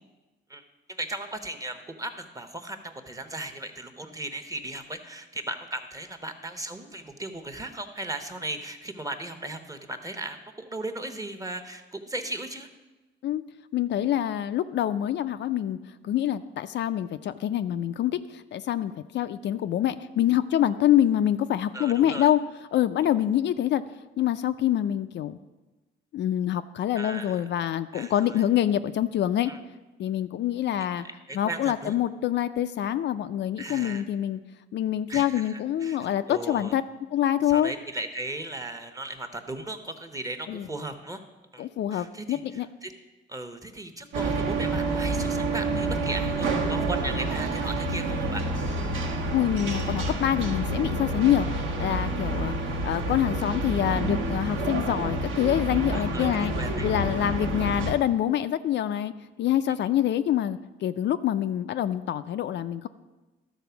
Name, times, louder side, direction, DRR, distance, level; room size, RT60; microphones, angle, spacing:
voice 1, 1.0-12.7 21.7-22.3 26.9-27.4 27.9-28.4 29.5-29.6 31.0-31.9 33.6-34.0 35.1-36.0 36.3-36.7 37.5-41.2 41.5-42.9 43.3-48.4 55.9-56.9, right 2 dB, 15° right, 7 dB, 1.0 m, -37 dB
voice 2, 13.7-15.8 16.0-22.4 22.7-23.8 24.2-25.4 26.1-29.5 30.0-31.0 31.3-34.4 34.7-36.8 37.1-37.7 40.5-40.7 41.6-42.7 49.3-56.5 56.8-59.1 59.4-62.9, left 11 dB, 65° left, 10 dB, 0.4 m, -26 dB
sound 1, 44.1-57.9, right 2 dB, 80° right, 1.4 m, -28 dB
12.5 x 4.2 x 6.9 m, 1.1 s
cardioid pair, 90°, 20 cm